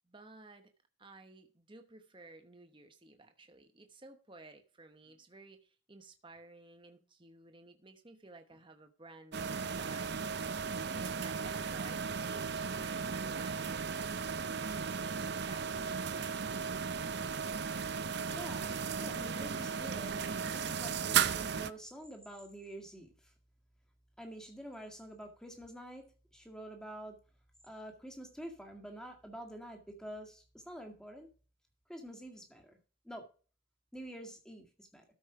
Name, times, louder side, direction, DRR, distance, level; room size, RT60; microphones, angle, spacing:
voice 1, 0.1-0.7 1.0-10.1 10.9-13.9 15.0-16.6, right 3 dB, 25° right, 1.0 m, -55 dB
sound 1, 9.3-21.7, right 6 dB, 55° right, 0.5 m, -35 dB
voice 2, 18.3-23.3 24.2-26.0 26.3-27.2 27.6-31.3 31.9-32.8 33.0-33.3 33.9-35.1, right 1 dB, 5° left, 1.9 m, -47 dB
13.0 x 5.3 x 4.9 m
head